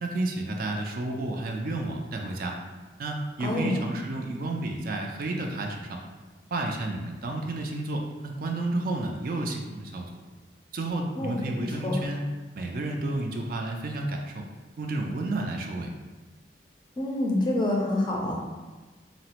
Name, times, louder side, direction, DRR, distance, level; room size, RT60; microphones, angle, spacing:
voice 1, 0.0-2.6 3.0-6.0 6.5-10.0 10.7-12.2 12.5-14.4 14.8-15.9, right 2 dB, 50° right, 1 dB, 0.3 m, -31 dB
voice 2, 3.4-3.8 11.2-11.4 11.8-12.0 17.0-18.4, left 1 dB, 25° left, -2 dB, 0.4 m, -27 dB
3.9 x 2.0 x 2.8 m, 1.3 s
head